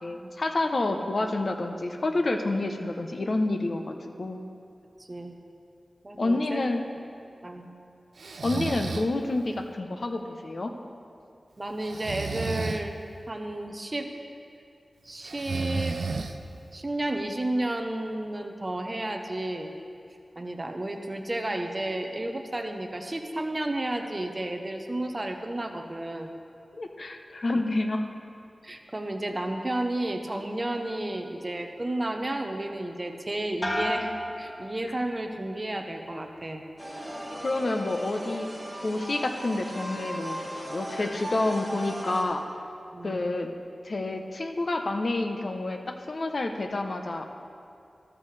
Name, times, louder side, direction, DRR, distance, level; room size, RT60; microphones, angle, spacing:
voice 1, 0.0-4.4 6.2-6.9 8.4-10.7 26.7-28.0 37.4-38.5 38.8-42.4 43.0-43.5 43.8-47.3, left 2 dB, 55° left, 5 dB, 0.8 m, -29 dB
voice 2, 5.0-5.4 6.0-6.6 7.4-7.7 11.6-13.0 13.3-14.1 15.0-16.2 16.7-19.7 20.4-26.3 27.5-27.6 28.6-36.6 42.9-43.3, right 1 dB, 30° right, 4 dB, 0.9 m, -32 dB
Breathing, 8.2-9.1 11.8-12.8 15.2-16.6, right 4 dB, 85° right, 0.5 m, -32 dB
sound 1, 33.6-35.3 35.7-36.3, equal, 20° left, 1.4 m, -34 dB
sound 2, 36.8-42.2, equal, 10° right, 2.9 m, -37 dB
13.5 x 13.0 x 3.3 m, 2.5 s
wide cardioid pair, 110°, 0 cm